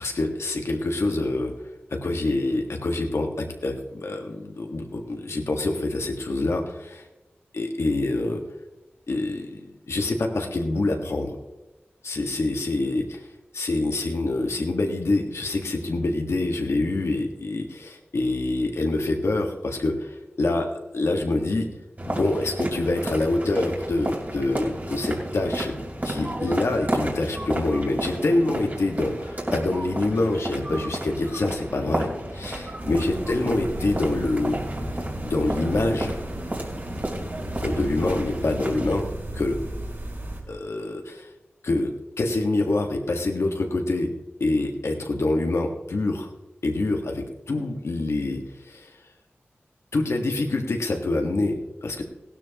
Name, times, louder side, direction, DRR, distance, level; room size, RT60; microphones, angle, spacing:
voice 1, 0.0-1.5 1.9-7.1 7.5-8.4 9.1-11.4 12.0-13.2 13.5-20.7 20.9-21.7 22.0-25.7 26.0-34.6 35.2-36.2 37.6-39.1 39.3-39.6 40.5-41.3 41.6-44.1 44.4-46.3 46.6-48.9 49.9-52.0, left 2 dB, 85° left, 2 dB, 1.5 m, -26 dB
sound 1, 22.0-39.0, right 1 dB, 40° right, 3.0 m, -32 dB
sound 2, 32.8-40.4, right 1 dB, 60° right, 3.9 m, -34 dB
16.5 x 12.0 x 3.0 m, 1.0 s
cardioid pair, 45°, 4 cm